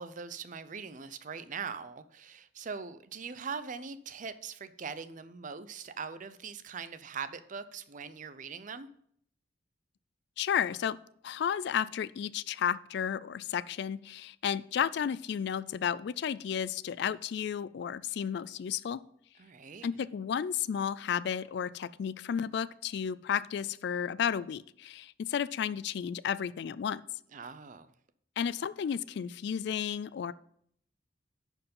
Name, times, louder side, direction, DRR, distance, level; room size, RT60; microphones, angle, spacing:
voice 1, 0.0-8.9 19.4-19.9 27.3-27.9, right 5 dB, 40° right, 0.5 m, -41 dB
voice 2, 10.4-11.0 11.2-19.0 19.8-27.0 28.4-30.3, left 8 dB, 60° left, 0.3 m, -32 dB
10.5 x 4.6 x 5.4 m
head